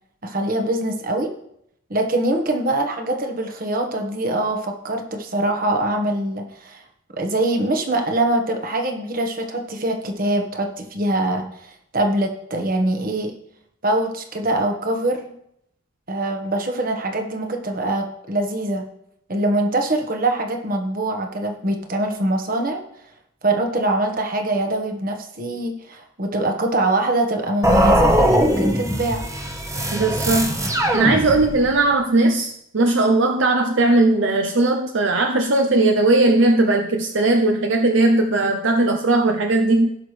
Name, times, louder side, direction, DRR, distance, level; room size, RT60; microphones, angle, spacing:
voice 1, 0.2-1.3 1.9-6.8 7.1-13.3 13.8-15.3 16.1-18.8 19.3-22.8 23.4-29.3, right 1 dB, 45° right, 4 dB, 1.4 m, -23 dB
sound 1, 27.6-31.7, equal, 15° right, 1.0 m, -20 dB
voice 2, 29.9-30.6 30.9-40.0, right 2 dB, 65° right, 5 dB, 0.7 m, -18 dB
16.5 x 6.1 x 3.3 m, 0.75 s
head